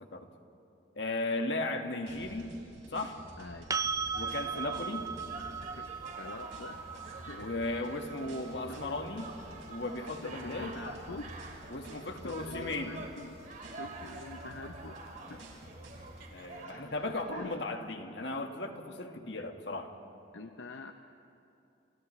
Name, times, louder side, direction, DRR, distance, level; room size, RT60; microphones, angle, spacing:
voice 1, 0.9-2.5 2.9-3.2 4.2-5.1 7.4-9.4 9.7-10.8 11.7-12.9 16.3-19.9, left 2 dB, 70° left, 4 dB, 1.7 m, -36 dB
sound 1, 2.1-16.3, right 1 dB, 80° right, 5.2 m, -51 dB
voice 2, 3.4-3.8 5.8-5.9 6.2-6.8 7.3-7.5 8.7-8.8 10.2-11.3 12.2-13.4 13.7-15.0 15.3-15.5 17.0-17.6 20.3-20.9, left 3 dB, 85° left, 6 dB, 0.7 m, -45 dB
sound 2, 3.7-11.5 14.3-14.4, right 6 dB, 20° right, 0.4 m, -39 dB
sound 3, 4.1-17.6, right 2 dB, 45° right, 2.3 m, -47 dB
29.5 x 28.0 x 3.2 m, 2.7 s
head